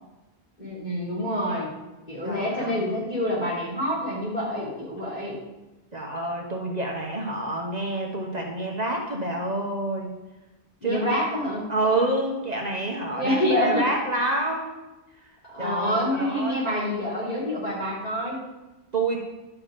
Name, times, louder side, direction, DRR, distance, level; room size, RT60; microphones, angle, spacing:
voice 1, 0.6-1.7 2.1-5.4 10.8-11.7 13.1-13.9 15.5-18.4, left 1 dB, 45° left, -7 dB, 4.1 m, -27 dB
voice 2, 2.2-3.1 5.9-10.1 10.8-11.2 11.7-14.7 15.6-16.6 18.9-19.3, right 2 dB, 40° right, 0 dB, 1.1 m, -28 dB
11.5 x 6.0 x 5.1 m, 1.1 s
omnidirectional pair, 1.1 m